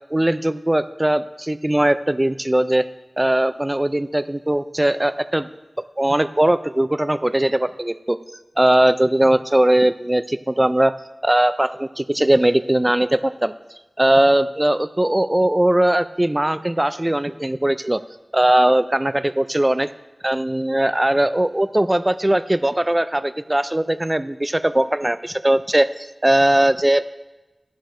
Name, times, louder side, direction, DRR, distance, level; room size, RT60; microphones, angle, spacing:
voice 1, 0.1-2.9 3.2-5.5 6.0-8.2 8.6-10.9 11.2-13.5 14.0-18.0 18.3-19.9 20.2-27.0, right 1 dB, 25° right, 13 dB, 0.4 m, -19 dB
11.0 x 11.0 x 3.1 m, 1.1 s
wide cardioid pair, 50°, 0 cm